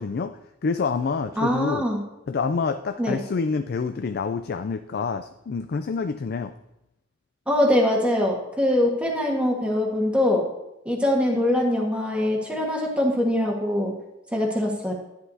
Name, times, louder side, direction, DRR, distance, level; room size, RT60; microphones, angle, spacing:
voice 1, 0.0-1.8 2.3-6.5, left 4 dB, 50° left, 10 dB, 0.4 m, -27 dB
voice 2, 1.4-2.0 3.0-3.2 7.5-10.5 10.8-13.9 14.3-14.9, left 1 dB, 5° right, -1 dB, 1.5 m, -23 dB
11.0 x 10.0 x 2.8 m, 0.90 s
head